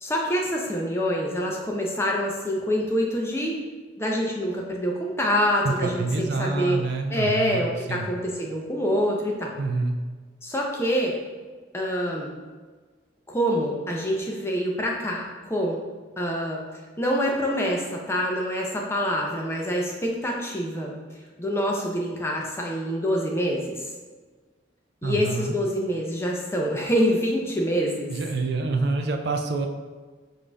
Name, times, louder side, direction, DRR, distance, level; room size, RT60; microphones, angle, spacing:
voice 1, 0.0-3.6 4.0-6.8 7.1-9.6 10.4-11.2 11.7-12.3 13.3-15.8 16.2-20.9 21.4-23.9 25.0-28.1, equal, 15° left, -1 dB, 0.5 m, -26 dB
voice 2, 5.6-8.1 9.6-10.0 25.0-25.6 28.1-29.7, right 3 dB, 60° right, 5 dB, 0.4 m, -27 dB
5.1 x 2.6 x 3.3 m, 1.4 s
head